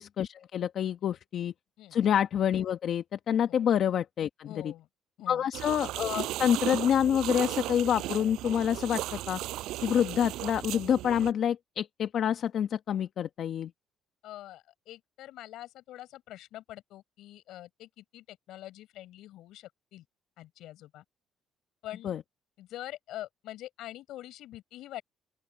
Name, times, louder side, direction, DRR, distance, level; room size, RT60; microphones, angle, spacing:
voice 1, 0.0-1.5 1.9-4.7 5.3-9.4 9.8-13.7 22.0-22.2, left 9 dB, 60° left, 1.2 m, -27 dB
voice 2, 4.5-4.9 5.2-5.5 14.2-20.0 20.4-21.0 21.8-22.1 22.6-25.0, left 14 dB, 75° left, 6.4 m, -45 dB
sound 1, 5.5-11.3, right 16 dB, 80° right, 5.9 m, -36 dB
open air
cardioid pair, 95°, 0 cm